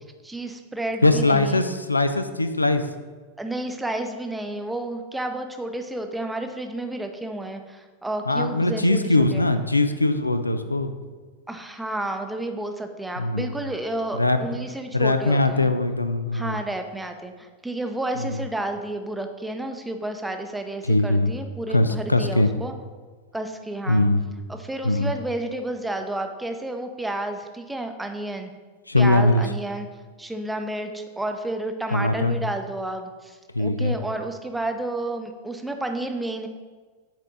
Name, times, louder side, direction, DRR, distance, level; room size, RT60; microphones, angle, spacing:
voice 1, 0.2-1.6 3.4-9.5 11.5-15.7 16.3-22.7 23.3-24.1 24.5-28.5 28.9-29.9 30.2-36.5, right 1 dB, 5° right, 6 dB, 0.6 m, -31 dB
voice 2, 1.0-2.8 8.3-10.9 13.2-13.5 14.2-14.4 14.9-16.6 18.2-18.4 20.9-21.3 21.7-22.5 23.9-24.2 24.8-25.1 28.9-29.4 31.9-32.3 33.5-33.9, left 2 dB, 85° left, 9 dB, 0.4 m, -21 dB
7.1 x 4.5 x 3.9 m, 1.4 s
figure-of-eight pair, 90°, 0 cm